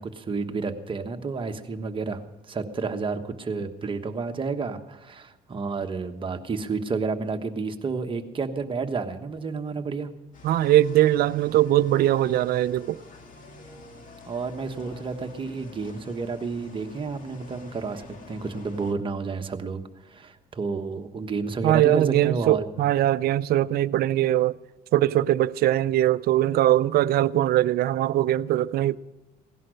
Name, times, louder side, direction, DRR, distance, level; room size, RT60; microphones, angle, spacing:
voice 1, 0.0-2.2 2.5-10.1 14.3-19.8 20.1-22.6, right 4 dB, 30° right, 1.2 m, -30 dB
sound 1, 10.3-18.9, left 3 dB, 50° left, 2.1 m, -47 dB
voice 2, 10.4-13.0 21.6-24.6 24.9-29.0, right 13 dB, 65° right, 0.5 m, -21 dB
17.0 x 11.0 x 6.5 m
cardioid pair, 110°, 17 cm